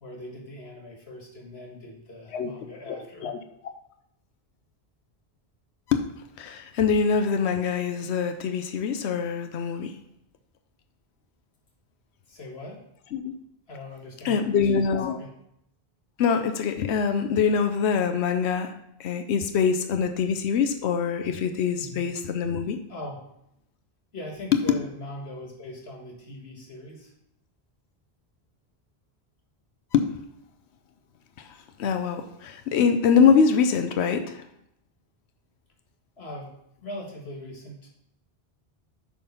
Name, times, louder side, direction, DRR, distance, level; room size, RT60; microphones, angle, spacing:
voice 1, 0.0-3.3 12.3-12.8 13.7-15.3 21.8-22.0 22.9-23.2 24.1-27.1 36.2-36.5 36.8-37.9, left 1 dB, 75° left, 0 dB, 1.8 m, -40 dB
voice 2, 2.9-3.4 5.9-6.0 6.4-10.0 13.1-13.3 14.2-15.2 16.2-18.7 19.0-22.8 29.9-30.2 31.4-34.4, left 6 dB, 90° left, 7 dB, 0.9 m, -24 dB
8.6 x 3.6 x 5.4 m, 0.77 s
omnidirectional pair, 1.1 m